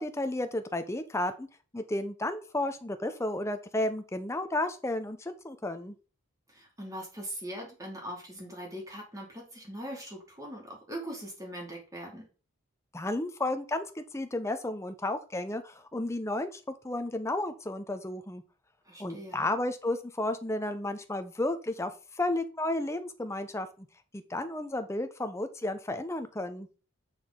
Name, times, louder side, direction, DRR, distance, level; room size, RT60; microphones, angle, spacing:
voice 1, 0.0-1.5 1.7-6.0 12.9-18.4 19.0-23.9 24.1-26.7, left 1 dB, 15° left, 9 dB, 0.6 m, -32 dB
voice 2, 6.5-12.3 18.9-19.5, equal, 15° right, -1 dB, 2.4 m, -41 dB
6.9 x 6.2 x 3.7 m, 0.35 s
head